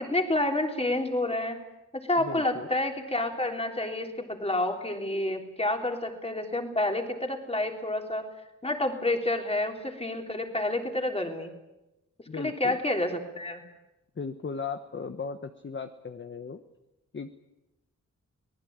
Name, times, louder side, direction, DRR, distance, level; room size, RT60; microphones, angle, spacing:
voice 1, 0.0-1.6 2.0-8.2 8.6-11.5 12.4-13.6, left 1 dB, 20° left, 4 dB, 3.4 m, -29 dB
voice 2, 2.2-2.7 12.3-12.8 14.2-16.6 17.1-17.3, left 5 dB, 40° left, 8 dB, 1.1 m, -37 dB
24.5 x 19.5 x 8.8 m, 0.95 s
wide cardioid pair, 135°, 30 cm